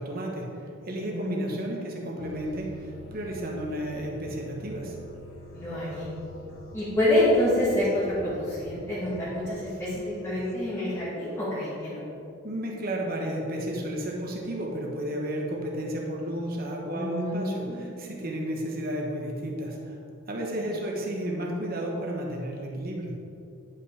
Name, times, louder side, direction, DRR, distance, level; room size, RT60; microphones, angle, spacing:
voice 1, 0.0-5.0 12.4-20.0 20.3-23.2, right 1 dB, 45° right, -1 dB, 1.2 m, -32 dB
voice 2, 0.9-1.4 5.5-6.1 6.7-12.0 16.9-17.9, left 1 dB, 15° left, -10 dB, 1.4 m, -27 dB
sound 1, 2.2-10.7, left 1 dB, 80° left, 1.0 m, -46 dB
10.5 x 5.6 x 3.3 m, 2.7 s
head